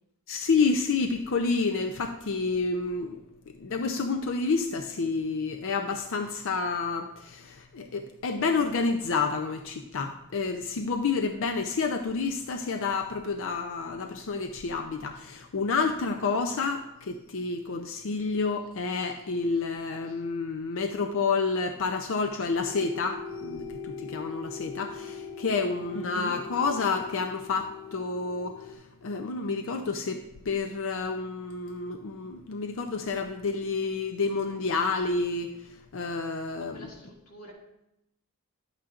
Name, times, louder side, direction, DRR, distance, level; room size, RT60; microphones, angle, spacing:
voice 1, 0.3-3.2 3.5-35.5 35.9-36.8, left 4 dB, 60° left, 6 dB, 0.5 m, -29 dB
sound 1, 22.7-28.7, left 5 dB, 15° right, 0.9 m, -40 dB
voice 2, 36.6-37.5, equal, 90° left, -2 dB, 2.2 m, -49 dB
11.0 x 8.6 x 2.5 m, 0.85 s
head